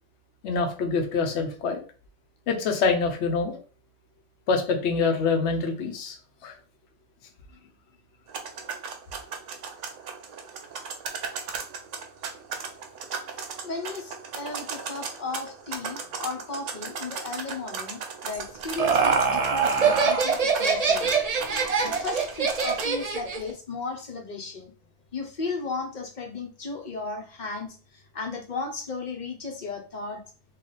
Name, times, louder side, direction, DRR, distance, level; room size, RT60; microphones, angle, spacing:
voice 1, 0.4-1.8 2.5-3.6 4.5-6.2 6.4-6.5 21.5-21.7, left 4 dB, 70° left, 3 dB, 1.0 m, -25 dB
sound 1, 8.3-22.9, right 5 dB, 80° right, 1.0 m, -37 dB
voice 2, 13.6-21.1 21.8-24.7 25.1-30.2, left 4 dB, 45° left, 3 dB, 0.8 m, -35 dB
Laughter, 18.3-23.5, right 5 dB, 45° right, 0.5 m, -24 dB
3.3 x 2.4 x 3.9 m, 0.38 s
omnidirectional pair, 1.3 m